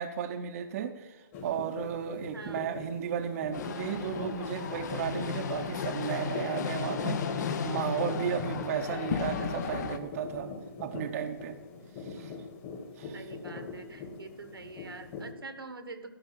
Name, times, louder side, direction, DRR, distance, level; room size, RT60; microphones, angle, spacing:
voice 1, 0.0-10.5 10.8-11.6 12.0-12.3 13.0-13.2, right 8 dB, 40° right, 5 dB, 0.8 m, -34 dB
sound 1, 1.3-15.3, left 4 dB, 35° left, 2.3 m, -42 dB
voice 2, 2.3-2.7 13.1-16.1, right 3 dB, 85° right, 10 dB, 1.4 m, -45 dB
sound 2, 3.5-10.0, left 7 dB, 50° left, 1.0 m, -34 dB
13.0 x 6.2 x 7.2 m, 1.3 s
figure-of-eight pair, 135°, 12 cm